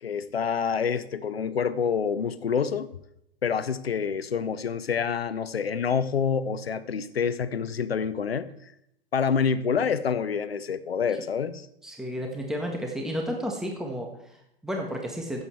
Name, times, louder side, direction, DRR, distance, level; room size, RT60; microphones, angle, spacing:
voice 1, 0.0-2.9 3.4-8.5 9.1-11.7, left 6 dB, 85° left, 15 dB, 0.8 m, -27 dB
voice 2, 11.8-15.4, equal, ahead, 1 dB, 1.7 m, -32 dB
14.0 x 8.1 x 4.6 m, 0.79 s
figure-of-eight pair, 95°, 30 cm